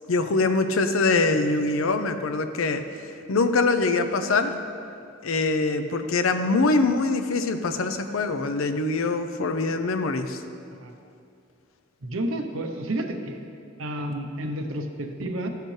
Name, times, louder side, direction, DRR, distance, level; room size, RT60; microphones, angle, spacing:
voice 1, 0.1-2.8 3.3-4.6 5.2-10.4, left 3 dB, 80° left, 8 dB, 0.6 m, -23 dB
voice 2, 12.0-13.4 13.8-15.5, right 1 dB, 75° right, 4 dB, 0.8 m, -30 dB
14.0 x 6.5 x 3.3 m, 2.5 s
head